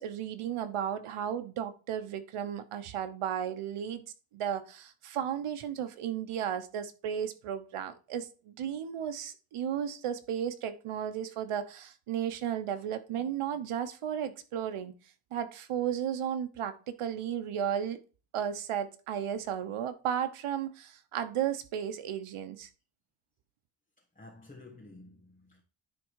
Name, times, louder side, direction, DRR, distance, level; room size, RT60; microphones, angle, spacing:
voice 1, 0.0-4.0 4.3-14.9 15.3-18.0 18.3-22.7, right 9 dB, 80° right, 1.1 m, -34 dB
voice 2, 24.1-25.6, left 2 dB, 15° left, 1.5 m, -52 dB
10.0 x 3.7 x 4.7 m
wide cardioid pair, 125°, 50 cm